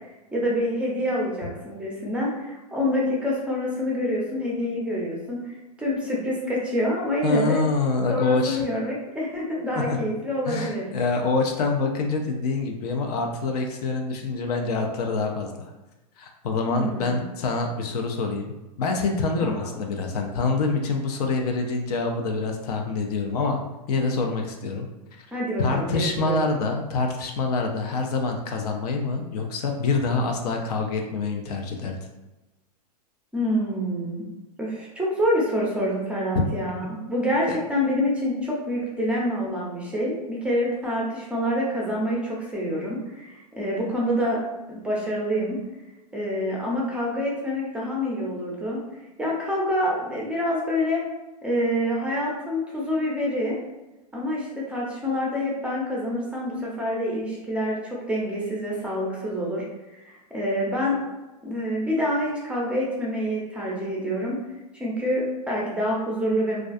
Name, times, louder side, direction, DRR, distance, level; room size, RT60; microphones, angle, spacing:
voice 1, 0.3-7.6 8.1-10.9 16.6-17.2 19.4-19.7 25.3-26.4 33.3-34.3 34.6-44.4 44.7-45.6 46.1-48.8 49.2-51.0 51.4-53.6 54.1-57.8 58.1-59.6 60.0-61.0 61.4-64.4 64.7-66.6, equal, 5° right, -4 dB, 0.5 m, -27 dB
voice 2, 7.2-8.6 9.7-10.0 10.5-15.7 16.2-18.5 18.8-23.6 23.9-24.9 25.6-32.0 36.3-36.4 37.5-37.6, left 3 dB, 65° left, 3 dB, 0.5 m, -26 dB
2.3 x 2.3 x 2.5 m, 1.0 s
hypercardioid pair, 120°, 21 cm